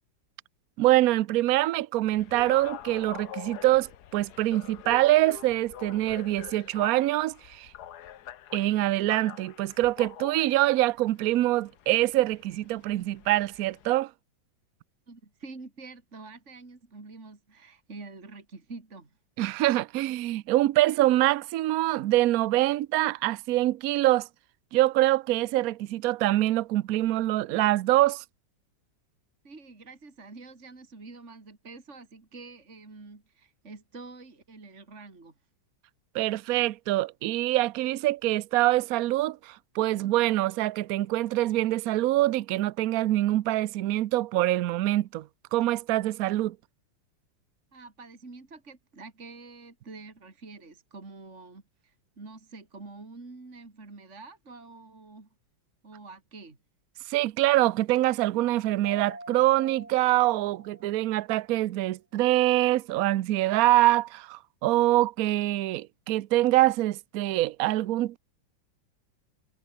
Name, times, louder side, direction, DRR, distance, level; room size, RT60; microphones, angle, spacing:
voice 1, 0.8-7.7 8.5-14.1 19.4-24.3 24.7-28.2 36.1-46.6 57.1-68.2, right 16 dB, 70° right, 0.8 m, -25 dB
sound 1, 2.0-13.9, left 11 dB, 60° left, 1.3 m, -45 dB
voice 2, 15.1-19.2 29.4-35.4 47.7-55.3 55.8-56.6, right 3 dB, 35° right, 3.4 m, -46 dB
Mallet percussion, 58.8-61.4, right 1 dB, 20° right, 5.2 m, -46 dB
omnidirectional pair, 2.2 m